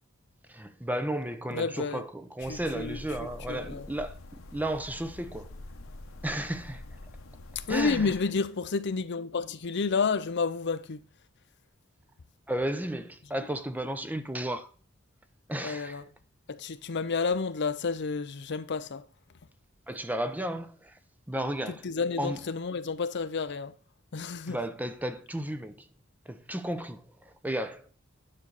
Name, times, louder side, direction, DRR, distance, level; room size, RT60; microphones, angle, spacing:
voice 1, 0.5-5.5 6.2-6.8 7.7-8.1 12.5-14.7 15.5-16.0 19.9-21.0 21.3-21.9 22.2-22.4 24.5-25.9 26.3-28.1, right 1 dB, 10° right, 0.7 m, -34 dB
voice 2, 1.5-2.0 2.5-3.0 3.5-3.9 7.7-11.0 15.6-16.0 16.5-19.0 21.7-23.7 24.1-24.6, left 4 dB, 60° left, 0.6 m, -30 dB
sound 1, 2.4-8.2, left 2 dB, 75° left, 1.2 m, -46 dB
9.9 x 6.3 x 4.1 m
head